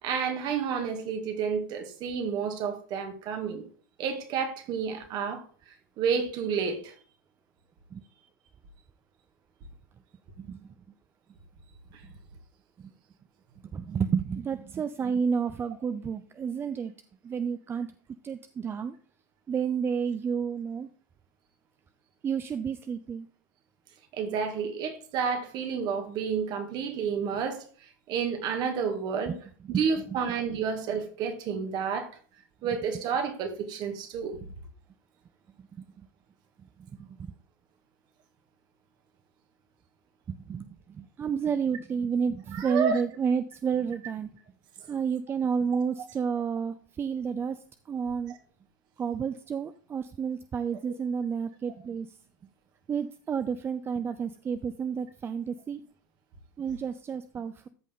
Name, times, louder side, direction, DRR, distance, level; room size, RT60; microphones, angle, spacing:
voice 1, 0.0-3.6 4.0-5.4 6.0-6.9 24.1-27.6 28.1-29.3 29.7-32.1 32.6-34.4 42.5-43.0, right 6 dB, 45° right, 2.0 m, -30 dB
voice 2, 10.4-10.7 12.8-12.9 13.7-16.9 17.2-17.9 18.2-18.9 19.5-20.9 22.2-23.3 29.3-29.4 29.6-29.8 30.1-30.2 35.8-36.1 37.0-37.1 40.3-44.3 44.9-48.3 49.0-52.2 52.9-55.8 56.6-57.7, right 6 dB, 25° right, 0.5 m, -31 dB
13.5 x 5.3 x 3.7 m
hypercardioid pair, 90°, 10 cm